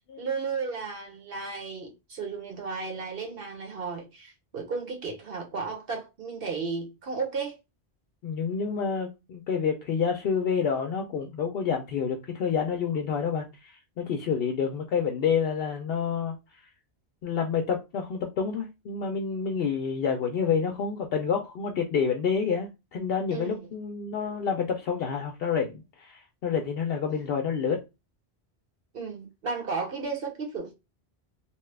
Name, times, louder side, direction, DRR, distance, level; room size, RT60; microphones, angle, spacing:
voice 1, 0.2-7.6 23.3-23.7 28.9-30.7, right 4 dB, 60° right, 1.1 m, -34 dB
voice 2, 8.2-16.4 17.2-27.8, left 6 dB, 70° left, 0.7 m, -28 dB
2.9 x 2.2 x 3.2 m
omnidirectional pair, 1.1 m